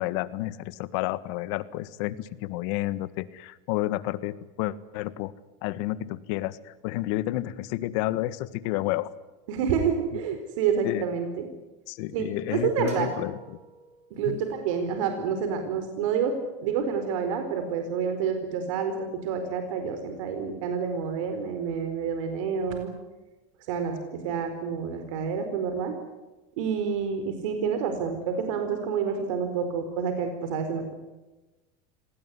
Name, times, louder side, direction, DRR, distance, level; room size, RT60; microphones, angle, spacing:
voice 1, 0.0-5.3 5.6-9.1 10.1-10.2 10.8-11.1 11.9-13.6 14.3-14.4, left 16 dB, 70° left, 15 dB, 1.6 m, -30 dB
voice 2, 9.5-11.5 12.1-13.1 14.1-16.4 16.6-22.9 23.7-26.0 26.6-30.9, right 6 dB, 85° right, 6 dB, 4.4 m, -28 dB
sound 1, 12.9-14.6, right 6 dB, 40° right, 7.3 m, -47 dB
26.5 x 19.0 x 9.9 m, 1.1 s
supercardioid pair, 135°, 16 cm